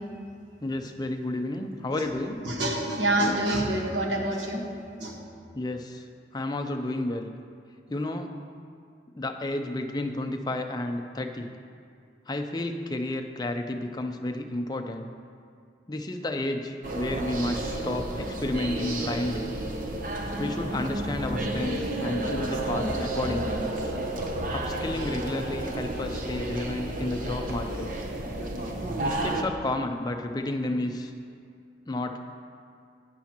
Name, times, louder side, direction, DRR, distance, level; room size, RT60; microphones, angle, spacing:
voice 1, 0.6-2.4 5.5-6.1 6.3-7.3 7.9-8.4 9.2-11.5 12.3-15.1 15.9-19.5 20.4-23.6 24.5-27.9 29.0-31.1 31.9-32.2, left 1 dB, 25° left, 5 dB, 0.5 m, -31 dB
voice 2, 2.4-4.6 5.0-5.2, right 1 dB, 90° right, 0 dB, 1.4 m, -26 dB
sound 1, 16.8-29.4, right 1 dB, 50° right, 0.8 m, -31 dB
13.0 x 9.2 x 2.9 m, 2.4 s
head